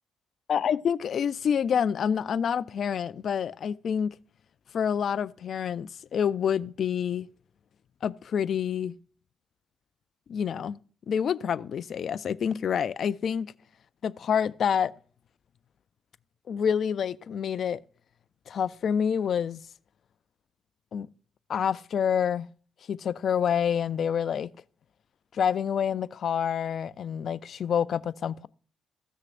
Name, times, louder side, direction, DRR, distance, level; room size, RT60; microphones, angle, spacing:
voice 1, 0.5-4.1 4.7-7.3 8.0-8.9 10.3-10.8 11.1-13.5 14.0-14.9 16.5-17.8 18.5-19.6 20.9-21.1 21.5-22.5 22.9-24.5 25.3-28.5, left 8 dB, 60° left, 0.4 m, -27 dB
16.0 x 6.5 x 2.5 m
cardioid pair, 90°, 0 cm